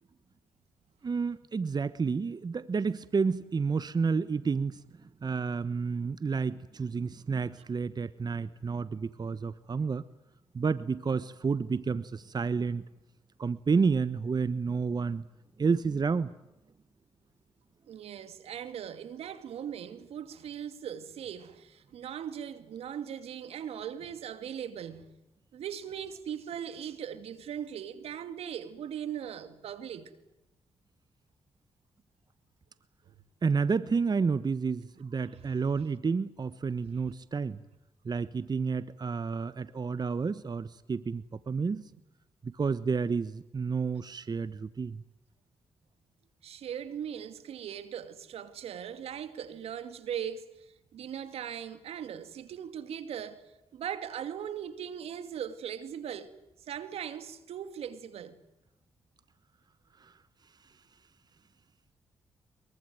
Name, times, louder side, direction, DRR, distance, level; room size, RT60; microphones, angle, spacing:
voice 1, 1.0-4.8 5.2-10.0 10.5-12.8 13.4-15.2 15.6-16.3 33.4-37.6 38.0-41.8 42.4-45.0 60.0-60.1, right 5 dB, 40° right, 1.2 m, -30 dB
voice 2, 17.9-25.1 25.5-30.1 33.1-33.2 35.3-35.4 46.4-50.7 50.9-53.4 53.7-56.3 56.7-58.4, right 9 dB, 80° right, 2.5 m, -39 dB
23.5 x 23.0 x 9.3 m
supercardioid pair, 55°, 10 cm